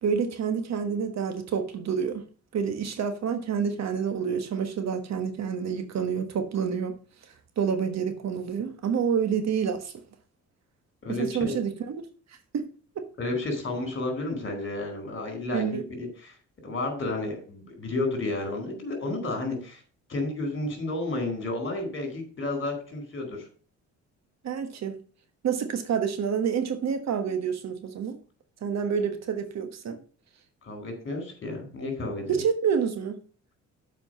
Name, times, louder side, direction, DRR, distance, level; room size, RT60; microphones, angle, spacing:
voice 1, 0.0-2.2 2.5-7.0 7.6-9.9 11.1-12.0 12.5-12.7 12.9-13.1 15.5-15.8 24.4-25.0 25.4-28.2 28.6-30.0 32.3-33.2, right 7 dB, 60° right, 1.4 m, -28 dB
voice 2, 11.0-11.5 13.2-16.3 16.6-19.8 20.1-23.5 30.6-32.4, left 2 dB, 40° left, 4.4 m, -31 dB
7.5 x 5.1 x 6.5 m
cardioid pair, 90°, 30 cm